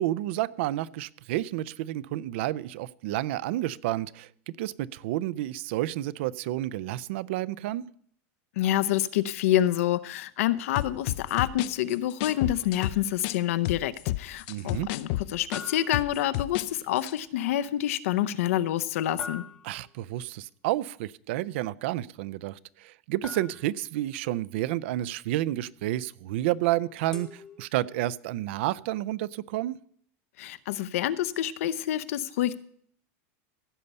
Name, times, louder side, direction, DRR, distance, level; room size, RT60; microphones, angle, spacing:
voice 1, 0.0-4.3 4.6-7.8 14.5-14.9 19.6-29.8, right 15 dB, 55° right, 20 dB, 0.5 m, -30 dB
voice 2, 8.6-19.4 30.4-32.6, left 12 dB, 80° left, 15 dB, 0.7 m, -27 dB
sound 1, 10.7-13.4 13.6-16.7 17.0-17.2, left 16 dB, 45° left, 0.5 m, -31 dB
sound 2, 12.3-12.9 15.5-16.8 19.2-20.1 23.2-24.0 27.1-28.1, left 4 dB, 10° left, 1.0 m, -44 dB
15.5 x 5.5 x 8.1 m, 0.62 s
supercardioid pair, 180°, 7 cm